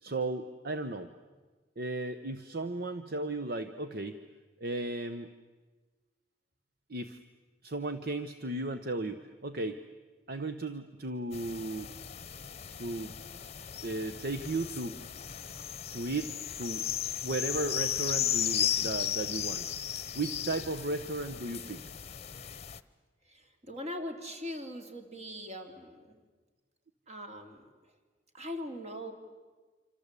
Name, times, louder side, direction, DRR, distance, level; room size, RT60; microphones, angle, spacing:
voice 1, 0.0-1.1 1.8-4.2 4.6-5.3 6.9-7.2 7.6-9.8 10.3-11.9 12.8-13.1 13.8-15.0 15.9-16.9 17.2-19.7 20.1-21.8, right 2 dB, 55° right, 9 dB, 1.1 m, -35 dB
sound 1, 11.3-22.8, left 10 dB, 35° left, 0.9 m, -35 dB
voice 2, 23.3-26.2 27.1-27.6 28.3-29.1, left 1 dB, 40° right, 5 dB, 3.2 m, -41 dB
26.5 x 26.5 x 8.4 m, 1.3 s
head